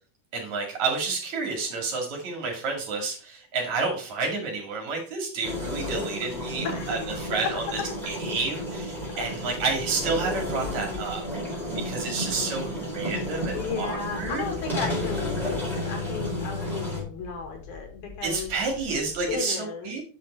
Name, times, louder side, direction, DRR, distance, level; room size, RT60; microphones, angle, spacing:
voice 1, 0.3-7.8 8.1-11.2 11.8-14.5 18.2-20.0, right 4 dB, 70° right, 1 dB, 3.4 m, -30 dB
sound 1, 5.4-17.0, left 1 dB, ahead, 4.0 m, -32 dB
sound 2, 6.3-19.4, left 4 dB, 20° right, 2.7 m, -45 dB
voice 2, 6.6-7.3 9.2-9.5 13.5-18.5 19.3-20.0, left 5 dB, 85° left, 3 dB, 3.3 m, -34 dB
7.8 x 5.8 x 4.1 m, 0.40 s
omnidirectional pair, 3.4 m